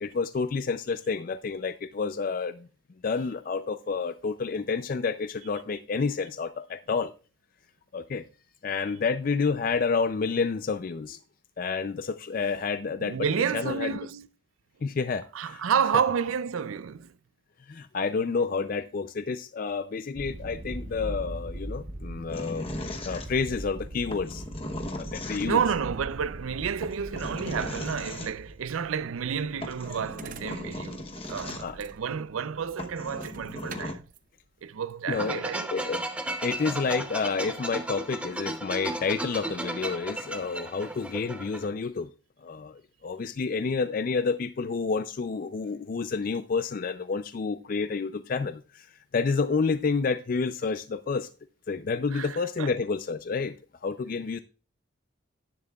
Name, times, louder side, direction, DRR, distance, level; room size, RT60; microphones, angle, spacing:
voice 1, 0.0-2.7 3.0-7.1 7.9-8.2 8.6-11.2 11.6-13.2 13.5-14.0 14.8-15.6 17.7-22.7 23.1-24.4 25.0-25.6 31.6-31.8 35.1-35.4 35.7-36.0 36.4-42.1 42.4-48.9 49.1-51.3 51.7-53.5 53.8-54.4, left 4 dB, 45° left, 0.4 m, -29 dB
voice 2, 13.0-14.3 15.3-17.1 25.4-34.0 34.6-35.7 52.1-52.7, right 7 dB, 85° right, 0.5 m, -30 dB
sound 1, 20.1-34.2, right 1 dB, 40° right, 0.8 m, -42 dB
sound 2, 22.3-23.7 24.1-25.8 26.8-28.3 29.3-29.4 29.6-31.9 32.4-32.5 32.8-33.9, left 1 dB, 30° left, 0.9 m, -38 dB
sound 3, 35.1-41.7, right 1 dB, 5° right, 0.7 m, -35 dB
10.5 x 10.5 x 2.3 m
head